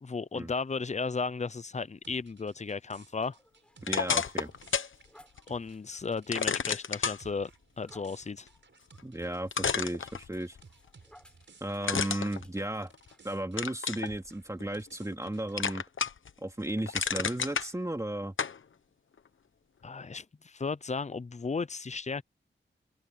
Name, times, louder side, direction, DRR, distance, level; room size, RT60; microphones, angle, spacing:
voice 1, 0.0-3.4 5.5-7.5 7.8-8.5 19.8-22.2, left 4 dB, 35° left, 0.7 m, -34 dB
sound 1, 2.0-12.6 12.9-15.7, right 4 dB, 65° right, 7.0 m, -58 dB
sound 2, 3.3-12.0 12.4-12.5 13.1-13.3, equal, 5° left, 6.7 m, -61 dB
sound 3, 3.8-5.0 5.4-5.5 6.3-7.2 9.0-9.1 9.5-10.6 11.8-13.1 13.6-14.1 14.6-15.3 15.6-16.3 16.7-17.7 18.4-18.6, left 6 dB, 75° left, 1.1 m, -31 dB
voice 2, 3.8-4.5 9.0-10.6 11.6-12.9 13.2-15.8 16.4-18.3, right 1 dB, 15° right, 2.8 m, -34 dB
wide cardioid pair, 100°, 20 cm